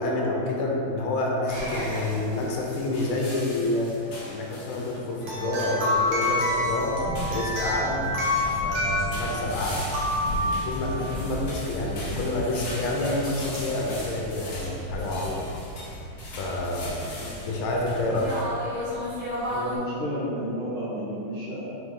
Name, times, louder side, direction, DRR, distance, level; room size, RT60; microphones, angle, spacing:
voice 1, 0.0-7.0 7.3-8.1 8.6-9.8 10.4-15.4 16.4-17.0 17.4-18.3, left 2 dB, 90° left, -2 dB, 1.4 m, -28 dB
sound 1, 1.5-19.8, left 1 dB, 50° right, 1.9 m, -36 dB
sound 2, 2.9-5.0 5.6-5.9 6.2-6.6 7.1-8.7 9.1-18.4, left 1 dB, 60° left, 1.3 m, -41 dB
sound 3, 5.2-11.2 13.5-13.6 14.6-14.7, left 1 dB, 65° right, 1.5 m, -28 dB
voice 2, 17.2-17.6 19.5-21.7, equal, 85° right, -12 dB, 1.7 m, -32 dB
4.0 x 3.1 x 3.6 m, 2.8 s
omnidirectional pair, 2.2 m